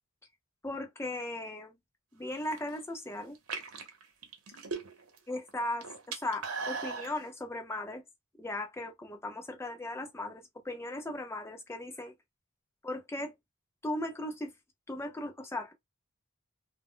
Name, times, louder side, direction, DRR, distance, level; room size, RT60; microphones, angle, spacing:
voice 1, 0.6-1.7 2.1-3.4 5.3-8.0 8.4-12.1 12.8-13.3 13.8-14.5 14.9-15.7, left 1 dB, 10° left, 0.6 m, -37 dB
sound 1, 2.3-2.8 3.3-5.2 5.5-7.1, right 4 dB, 90° right, 0.8 m, -38 dB
2.1 x 2.1 x 3.6 m
head